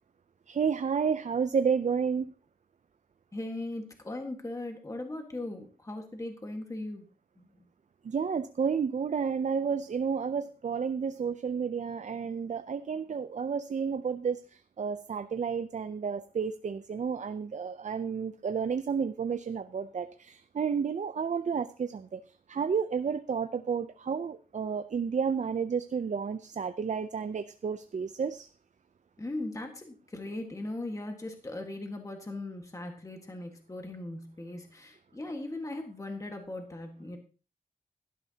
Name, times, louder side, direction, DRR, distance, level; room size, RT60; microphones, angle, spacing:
voice 1, 0.5-2.3 8.0-14.4 14.8-22.2 22.5-28.5, right 6 dB, 55° right, 0.5 m, -31 dB
voice 2, 3.3-7.0 7.4-7.5 29.2-37.2, left 2 dB, 20° left, 1.6 m, -39 dB
17.0 x 12.5 x 2.8 m
wide cardioid pair, 115°, 15 cm